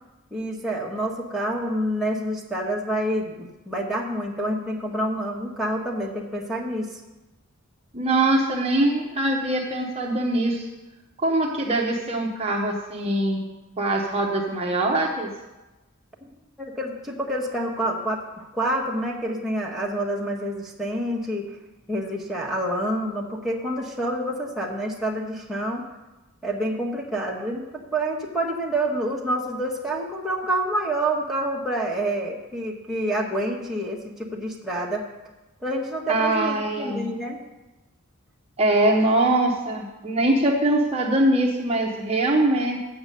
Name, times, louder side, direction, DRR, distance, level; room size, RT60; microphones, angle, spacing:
voice 1, 0.3-6.8 16.7-21.4 21.9-25.8 26.4-35.0 35.6-37.4, right 1 dB, ahead, -3 dB, 1.3 m, -27 dB
voice 2, 7.9-10.7 11.2-13.5 13.8-15.3 36.1-37.1 38.6-42.8, right 1 dB, 30° right, -1 dB, 0.9 m, -22 dB
7.9 x 7.3 x 6.7 m, 1.1 s
head